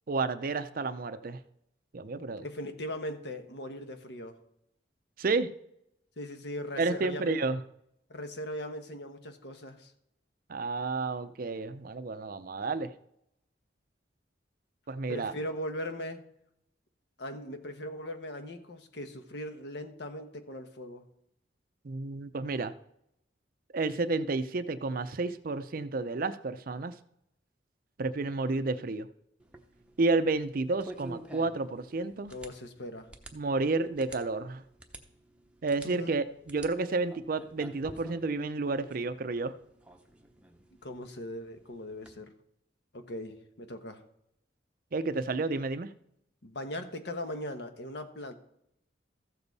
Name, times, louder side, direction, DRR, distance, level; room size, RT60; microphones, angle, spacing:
voice 1, 0.1-1.4 1.9-2.5 5.2-5.5 6.8-7.6 10.5-12.9 14.9-15.3 21.8-22.7 23.7-26.9 28.0-29.1 30.0-32.3 33.3-34.6 35.6-39.5 44.9-45.9, right 3 dB, 50° right, 12 dB, 0.5 m, -31 dB
voice 2, 2.4-4.4 6.2-7.4 8.1-9.9 15.1-16.2 17.2-21.0 32.3-33.1 35.8-36.1 40.8-42.3 42.9-44.0 46.4-48.3, left 1 dB, 65° left, 7 dB, 1.1 m, -39 dB
sound 1, 29.4-42.2, right 1 dB, 5° right, 0.8 m, -51 dB
14.5 x 7.0 x 4.1 m, 0.76 s
head